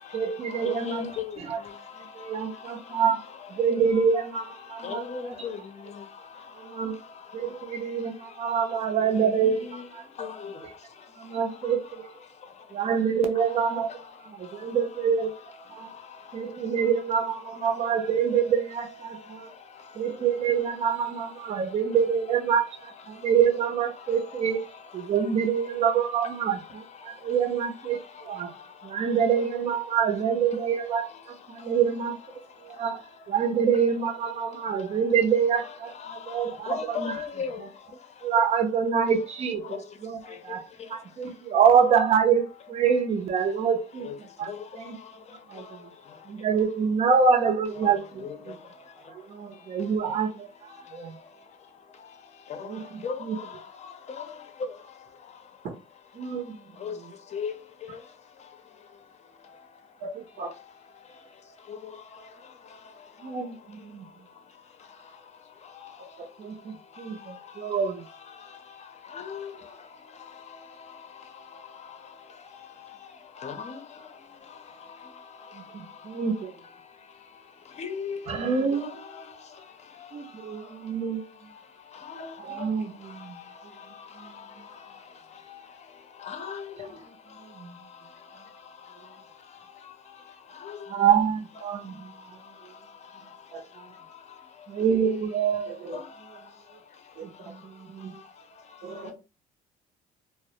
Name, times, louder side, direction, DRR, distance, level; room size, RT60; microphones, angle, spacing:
voice 1, 0.1-1.1 1.5-1.6 2.1-3.2 3.5-5.0 6.6-7.0 7.3-10.0 11.2-12.1 12.7-13.9 14.4-15.3 15.7-15.9 16.3-19.5 19.9-24.6 24.9-28.5 28.8-31.1 31.5-32.2 32.6-33.0 33.3-37.1 38.2-39.6 40.0-40.6 40.9-44.1 44.4-44.9 45.5-45.6 46.3-48.5 49.1-50.5 50.9-51.1 52.7-52.8 53.2-53.4 56.2-56.6 63.2-64.0 66.4-68.0 76.0-76.5 78.3-78.9 80.1-81.2 82.4-83.4 84.2-84.3 84.6-84.7 87.6-87.8 90.9-92.1 94.7-95.8 97.5-98.1, right 7 dB, 40° right, 0.5 m, -26 dB
voice 2, 0.6-1.3 4.8-5.6 9.3-9.8 10.2-10.5 36.7-37.6 44.0-44.1 44.5-44.6 48.2-48.3 53.0-53.2 56.8-56.9 57.3-57.5 69.1-69.5 73.4-73.8 77.8-78.2 82.1-82.3 86.3-86.9 90.6-90.8 94.9-95.2, left 6 dB, 40° left, 0.6 m, -34 dB
voice 3, 60.0-60.5 66.2-66.3 93.5-93.6 95.7-96.0 97.2-97.5 98.8-99.1, right 3 dB, 70° right, 0.7 m, -39 dB
2.3 x 2.0 x 2.7 m
cardioid pair, 110°, 17 cm